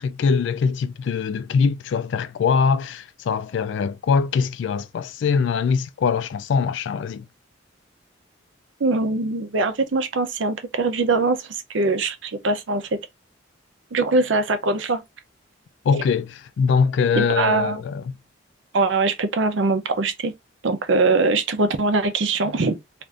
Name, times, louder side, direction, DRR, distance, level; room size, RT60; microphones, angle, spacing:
voice 1, 0.0-7.3 15.9-18.0, left 5 dB, 65° left, 0.3 m, -22 dB
voice 2, 8.8-13.0 13.9-15.0 17.2-17.8 18.7-20.3 20.6-22.8, right 3 dB, 70° right, 0.6 m, -22 dB
2.5 x 2.5 x 3.3 m
head